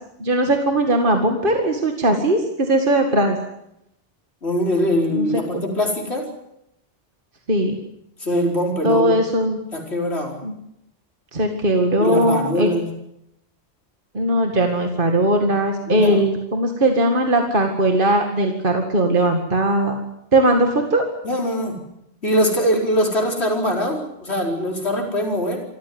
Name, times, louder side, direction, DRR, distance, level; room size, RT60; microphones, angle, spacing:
voice 1, 0.2-3.4 5.1-5.3 7.5-7.7 8.8-9.6 10.4-10.5 11.3-12.7 14.1-20.0 20.3-21.0, right 1 dB, 50° right, 4 dB, 2.3 m, -19 dB
voice 2, 4.4-6.3 8.2-9.2 9.7-10.4 12.0-12.9 15.8-16.2 21.2-21.8 22.2-25.6, equal, 70° left, 1 dB, 5.1 m, -22 dB
26.0 x 14.5 x 9.6 m, 0.81 s
omnidirectional pair, 1.1 m